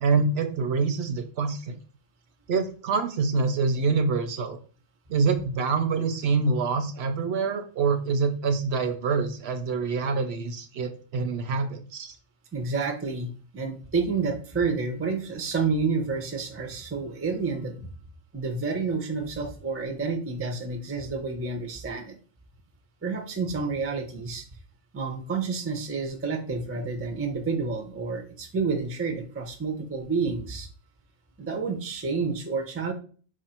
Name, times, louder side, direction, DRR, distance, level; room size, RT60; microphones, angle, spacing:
voice 1, 0.0-1.7 2.5-4.6 5.1-12.2, right 4 dB, 65° right, 7 dB, 0.8 m, -26 dB
voice 2, 12.5-17.9 18.3-22.1 23.0-24.4 24.9-30.7 31.4-32.9, right 4 dB, 20° right, 4 dB, 0.4 m, -29 dB
4.9 x 2.5 x 4.3 m, 0.41 s
omnidirectional pair, 1.3 m